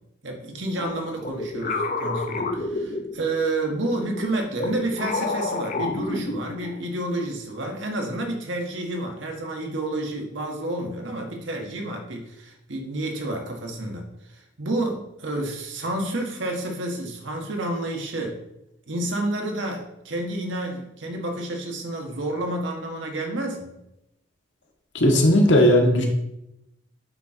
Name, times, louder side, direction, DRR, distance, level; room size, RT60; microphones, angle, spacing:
voice 1, 0.2-14.1 14.3-18.4 18.9-23.8, right 1 dB, 80° right, 1 dB, 1.5 m, -30 dB
sound 1, 0.8-3.5 4.1-6.8, left 3 dB, 40° left, 0.5 m, -30 dB
voice 2, 24.9-26.0, left 1 dB, 75° left, 1 dB, 1.4 m, -16 dB
8.7 x 3.8 x 4.4 m, 0.84 s
head